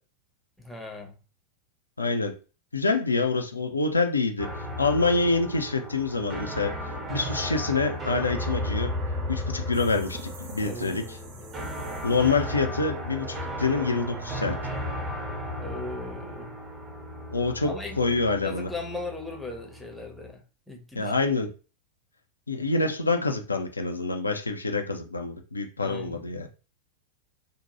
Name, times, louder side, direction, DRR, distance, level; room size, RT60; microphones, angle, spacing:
voice 1, 0.6-1.2 10.6-11.7 15.6-16.6 17.6-20.4 20.7-21.1 25.8-26.2, left 2 dB, 5° left, 1 dB, 0.7 m, -38 dB
voice 2, 2.0-2.3 2.7-4.5 4.8-6.7 7.1-8.9 9.3-11.0 12.0-14.6 17.3-18.7 21.0-21.5 22.5-26.5, left 3 dB, 80° left, 5 dB, 0.4 m, -26 dB
sound 1, 4.4-20.3, left 1 dB, 30° right, 0.9 m, -35 dB
REmixed gong, 9.7-12.5, right 5 dB, 50° right, 0.6 m, -48 dB
2.6 x 2.1 x 2.9 m, 0.35 s
figure-of-eight pair, 90°, 0 cm